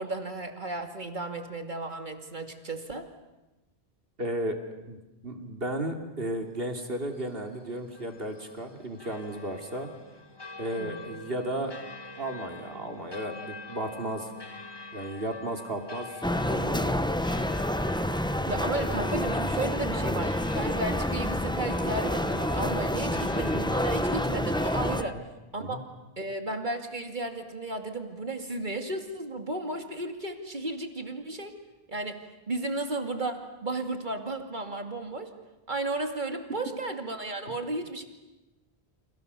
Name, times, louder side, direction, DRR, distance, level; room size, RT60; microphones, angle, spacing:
voice 1, 0.0-3.1 10.8-11.0 18.5-25.2 25.5-25.8 26.2-31.6 31.9-32.2 32.5-35.3 35.7-38.0, right 2 dB, 50° right, 5 dB, 2.6 m, -34 dB
voice 2, 4.2-4.6 4.9-5.0 5.2-9.9 10.6-11.7 12.2-14.3 14.9-16.1 16.4-17.0 23.0-23.2 25.0-25.2 25.6-25.8, right 1 dB, 65° right, 4 dB, 3.1 m, -34 dB
sound 1, 6.6-25.1, left 2 dB, 25° left, 1.7 m, -44 dB
sound 2, 16.2-25.0, left 1 dB, 5° left, 0.8 m, -28 dB
30.0 x 27.5 x 6.9 m, 1.0 s
omnidirectional pair, 1.1 m